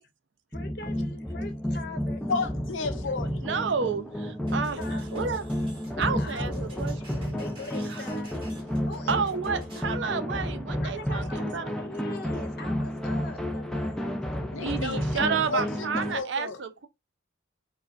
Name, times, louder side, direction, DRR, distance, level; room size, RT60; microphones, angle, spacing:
voice 1, 0.5-2.4 4.6-5.4 6.0-6.8 7.2-8.4 8.8-9.6 10.8-14.0 14.5-15.0, left 3 dB, 50° left, 0.9 m, -43 dB
sound 1, 0.5-16.2, equal, 5° left, 0.4 m, -31 dB
sound 2, 2.1-14.5, right 1 dB, 20° left, 1.1 m, -50 dB
voice 2, 2.3-3.4 14.5-15.9 16.1-16.6, left 3 dB, 75° left, 0.7 m, -32 dB
voice 3, 3.4-4.8 5.1-5.4 6.0-7.4 9.1-11.7 14.5-16.9, right 5 dB, 60° right, 0.5 m, -30 dB
sound 3, 4.5-10.0, right 1 dB, 25° right, 1.6 m, -50 dB
4.6 x 2.2 x 2.5 m
head